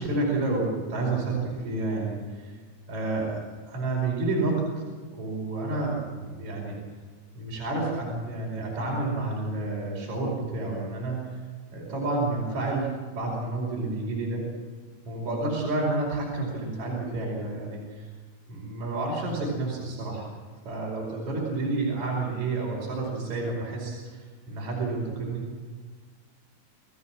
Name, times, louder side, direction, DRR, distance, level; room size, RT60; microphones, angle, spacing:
voice 1, 0.0-2.6 2.9-4.6 5.1-6.8 7.3-11.4 11.7-14.5 15.1-18.1 18.5-20.3 20.6-25.5, right 2 dB, 50° right, -3 dB, 6.3 m, -30 dB
29.0 x 17.0 x 7.6 m, 1.5 s
omnidirectional pair, 4.3 m